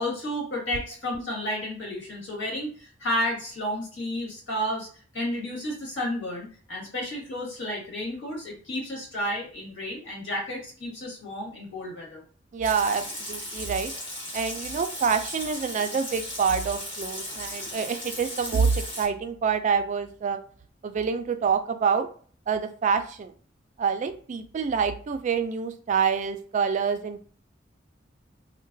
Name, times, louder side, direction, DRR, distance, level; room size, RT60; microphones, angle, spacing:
voice 1, 0.0-4.9 5.1-12.2, left 1 dB, 75° left, -3 dB, 1.6 m, -32 dB
voice 2, 12.5-13.9 14.3-20.4 20.8-22.1 22.5-23.3 23.8-27.3, right 6 dB, 40° right, 8 dB, 0.3 m, -26 dB
Water tap faucet / Sink (filling or washing) / Liquid, 12.6-19.1, left 1 dB, 30° left, 1.2 m, -36 dB
3.8 x 2.1 x 2.6 m, 0.43 s
head